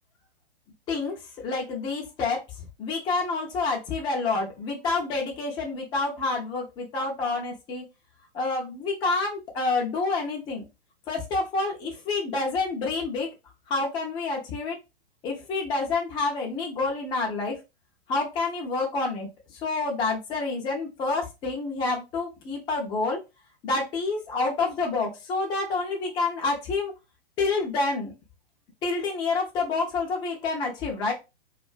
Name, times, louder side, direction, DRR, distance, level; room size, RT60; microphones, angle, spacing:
voice 1, 0.9-2.4 2.8-7.8 8.3-10.6 11.1-13.3 13.7-14.8 15.2-17.6 18.1-23.2 23.6-26.9 27.4-28.1 28.8-31.1, left 3 dB, 15° left, 0 dB, 0.4 m, -28 dB
2.3 x 2.3 x 2.3 m, 0.25 s
figure-of-eight pair, 115°, 31 cm